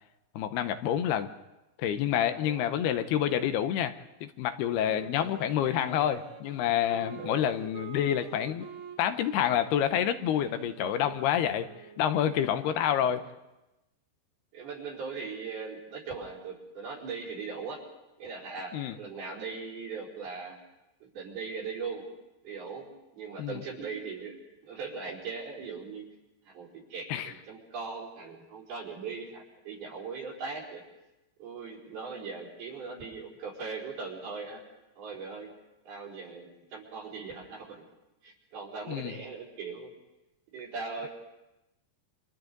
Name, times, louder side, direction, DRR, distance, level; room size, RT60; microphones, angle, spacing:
voice 1, 0.4-1.3 1.8-3.9 4.2-8.7 9.0-11.7 12.0-13.2 18.7-19.0 23.4-23.6 27.1-27.3 38.9-39.2, left 10 dB, 85° left, 9 dB, 3.0 m, -28 dB
voice 2, 2.3-2.7 5.7-6.1 6.9-7.5 12.9-13.1 14.5-17.8 18.2-20.6 21.0-22.1 22.4-22.9 23.2-24.4 24.6-26.1 26.5-30.8 31.4-34.6 35.0-35.5 35.8-37.8 38.2-39.9 40.5-41.1, right 4 dB, 75° right, -4 dB, 6.3 m, -40 dB
Wind instrument woodwind instrument, 4.7-12.4, right 7 dB, 50° right, 2.9 m, -47 dB
29.0 x 26.5 x 4.0 m, 0.98 s
omnidirectional pair, 4.5 m